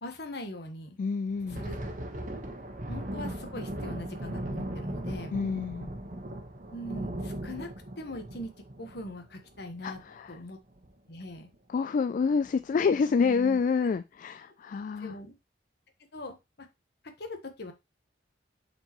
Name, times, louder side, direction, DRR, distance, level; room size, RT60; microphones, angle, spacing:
voice 1, 0.0-1.0 1.5-1.8 2.1-2.3 2.9-5.3 6.7-7.7 8.0-8.5 8.8-10.0 10.3-10.6 11.1-11.5 13.2-13.9 15.0-15.4 16.1-16.7 17.0-17.7, left 1 dB, 65° left, 6 dB, 1.3 m, -41 dB
voice 2, 1.0-1.6 5.3-5.9 9.8-10.4 11.7-15.2, left 5 dB, 50° left, 12 dB, 0.3 m, -28 dB
Thunder, 1.3-10.4 10.7-10.9 11.3-11.5 12.2-12.6, right 1 dB, 45° right, 1.2 m, -38 dB
7.7 x 4.5 x 3.0 m, 0.23 s
head